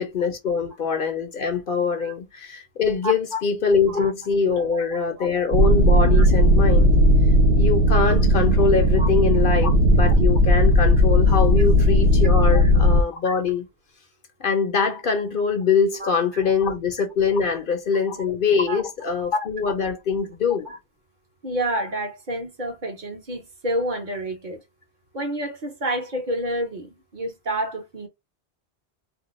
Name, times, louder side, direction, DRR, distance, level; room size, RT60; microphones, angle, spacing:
voice 1, 0.0-6.9 7.6-13.7 14.4-20.7, left 5 dB, 55° left, 0.8 m, -23 dB
voice 2, 3.0-3.4 3.9-4.1 4.5-4.7 5.0-5.1 6.1-6.3 9.0-9.1 11.9-12.0 12.6-12.7 16.0-16.4 17.4-17.5 18.1-18.2 18.7-18.8 20.7-20.8 21.4-24.6 25.1-28.1, right 1 dB, 50° right, 0.9 m, -29 dB
sound 1, 5.5-13.0, equal, 85° right, 0.9 m, -16 dB
2.5 x 2.3 x 4.0 m
omnidirectional pair, 1.1 m